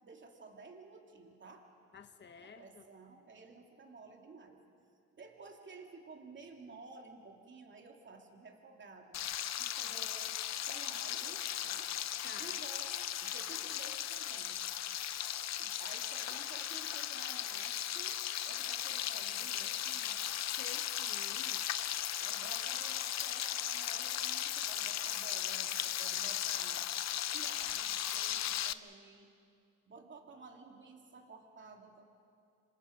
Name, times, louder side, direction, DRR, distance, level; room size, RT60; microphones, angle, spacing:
voice 1, 0.0-1.7 2.4-4.6 5.1-9.2 9.6-10.4 10.6-11.9 12.4-14.6 15.6-20.2 22.2-26.9 27.3-29.3 29.9-32.0, right 4 dB, 40° right, 2 dB, 3.0 m, -53 dB
voice 2, 1.9-2.9 12.2-12.6 20.5-21.7, left 5 dB, 35° left, 8 dB, 1.1 m, -52 dB
Frying (food), 9.1-28.7, left 11 dB, 60° left, 0.7 m, -37 dB
28.0 x 25.5 x 5.4 m, 2.4 s
cardioid pair, 90°, 30 cm